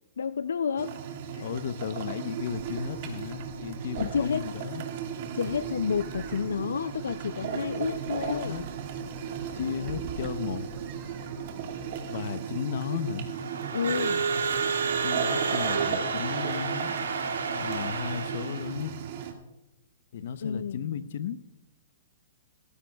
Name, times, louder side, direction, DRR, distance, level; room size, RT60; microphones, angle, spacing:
voice 1, 0.2-0.9 1.3-1.5 4.0-4.5 5.3-8.6 13.7-14.2 20.4-21.1, left 6 dB, 85° left, 0.4 m, -30 dB
sound 1, 0.8-19.3, right 7 dB, 55° right, 1.9 m, -36 dB
voice 2, 1.4-4.8 8.2-8.6 9.6-10.6 12.1-13.3 15.0-17.1 17.5-18.9 20.1-21.4, left 8 dB, 65° left, 0.8 m, -34 dB
sound 2, 2.5-11.9, right 5 dB, 35° right, 4.7 m, -47 dB
Crowd / Alarm, 13.3-18.8, right 5 dB, 90° right, 2.6 m, -30 dB
18.0 x 15.0 x 2.3 m
hypercardioid pair, 135°, 0 cm